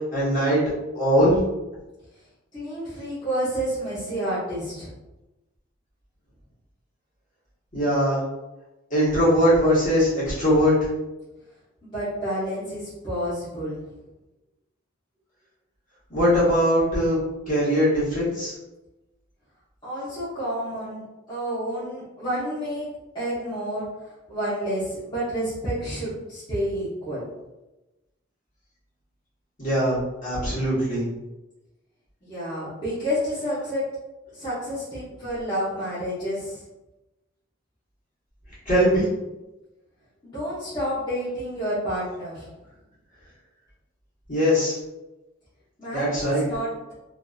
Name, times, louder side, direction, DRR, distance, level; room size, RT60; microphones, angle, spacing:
voice 1, 0.1-0.6 0.9-1.4 7.7-8.2 8.9-10.7 16.1-17.2 17.5-18.5 29.6-31.1 38.7-39.0 44.3-44.8 45.9-46.5, equal, 40° left, -9 dB, 1.3 m, -21 dB
voice 2, 2.5-4.9 11.8-13.8 19.8-22.9 23.1-27.2 32.2-33.8 34.3-36.6 40.2-42.5 45.8-46.7, equal, 20° left, -13 dB, 1.0 m, -29 dB
2.7 x 2.6 x 2.3 m, 1.0 s
head